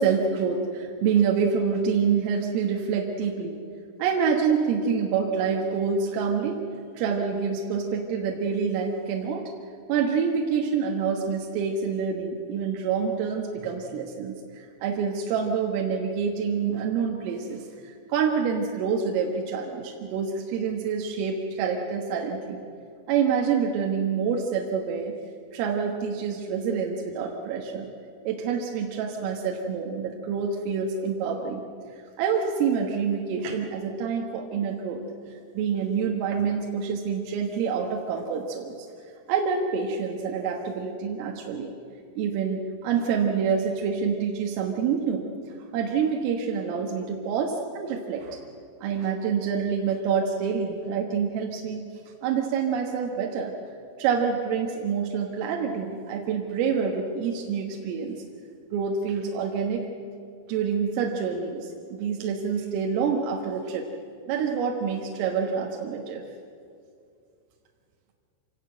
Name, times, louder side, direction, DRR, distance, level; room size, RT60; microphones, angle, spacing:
voice 1, 0.0-3.6 4.0-6.6 7.0-9.4 9.9-22.6 23.1-25.2 25.5-27.9 28.3-31.6 32.2-35.0 35.6-38.8 39.3-41.7 42.2-45.2 45.7-48.4 48.8-51.9 52.2-53.5 54.0-58.2 58.7-59.9 60.5-63.9 64.3-66.2, right 6 dB, 80° right, 1 dB, 4.0 m, -27 dB
27.0 x 18.0 x 7.8 m, 2.4 s
omnidirectional pair, 6.0 m